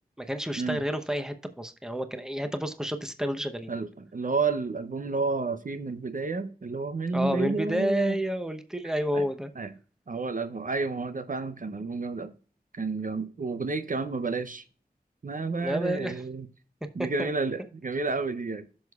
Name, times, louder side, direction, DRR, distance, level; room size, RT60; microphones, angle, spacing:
voice 1, 0.2-3.8 7.1-9.5 15.6-16.2 17.2-17.3, equal, 5° right, 0.8 m, -30 dB
voice 2, 3.7-8.2 9.1-9.3 9.6-9.7 10.1-12.3 12.7-14.6 15.2-16.5 16.9-18.7, right 4 dB, 55° right, 0.6 m, -30 dB
15.5 x 6.3 x 2.4 m
wide cardioid pair, 70°, 16 cm